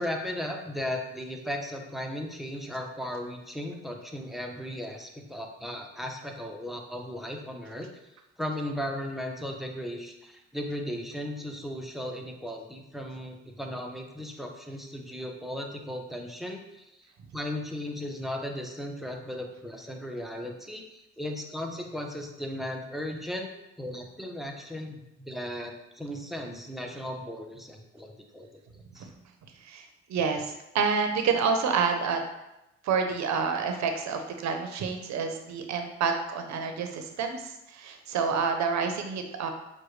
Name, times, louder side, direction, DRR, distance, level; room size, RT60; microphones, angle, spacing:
voice 1, 0.0-7.9 8.4-17.1 17.3-23.5 23.8-28.5 28.9-29.1, left 1 dB, ahead, 2 dB, 0.5 m, -36 dB
voice 2, 29.6-32.2 32.8-39.5, right 5 dB, 65° right, 5 dB, 0.6 m, -28 dB
6.1 x 2.2 x 3.1 m, 0.92 s
cardioid pair, 90°, 30 cm